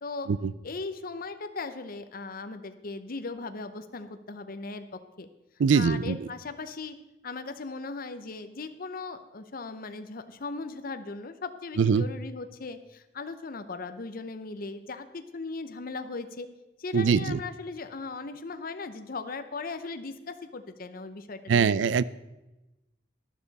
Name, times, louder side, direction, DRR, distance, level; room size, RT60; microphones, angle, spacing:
voice 1, 0.6-5.3 5.7-7.0 7.2-16.5 16.8-21.7, left 3 dB, 50° left, 9 dB, 0.7 m, -38 dB
voice 2, 5.6-6.3 11.8-12.1 16.9-17.4 21.5-22.0, right 6 dB, 80° right, 19 dB, 0.4 m, -23 dB
12.0 x 11.5 x 4.1 m, 1.0 s
head